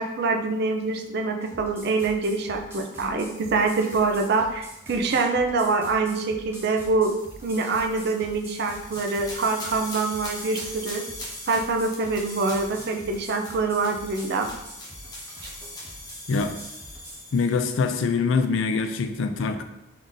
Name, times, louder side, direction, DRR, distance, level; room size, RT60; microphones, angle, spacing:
voice 1, 0.0-7.1 7.4-11.0 11.5-14.5 15.4-15.5, right 3 dB, 50° right, 4 dB, 0.4 m, -25 dB
sound 1, 1.4-17.3, right 1 dB, 10° right, 0.7 m, -45 dB
sound 2, 8.0-18.0, left 1 dB, 20° left, 0.8 m, -41 dB
voice 2, 17.3-19.6, left 4 dB, 65° left, 8 dB, 0.4 m, -24 dB
3.6 x 2.6 x 3.8 m, 0.87 s
head